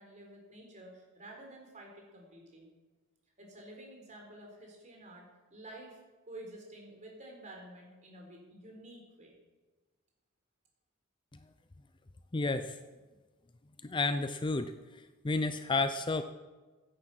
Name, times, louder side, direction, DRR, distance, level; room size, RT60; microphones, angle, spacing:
voice 1, 0.0-2.7 3.4-5.2 5.5-6.0 6.3-9.3, right 1 dB, 35° right, 0 dB, 3.9 m, -50 dB
voice 2, 12.3-12.8 13.8-14.7 15.2-16.2, left 3 dB, 20° left, 10 dB, 0.5 m, -31 dB
16.0 x 9.6 x 6.0 m, 1.3 s
head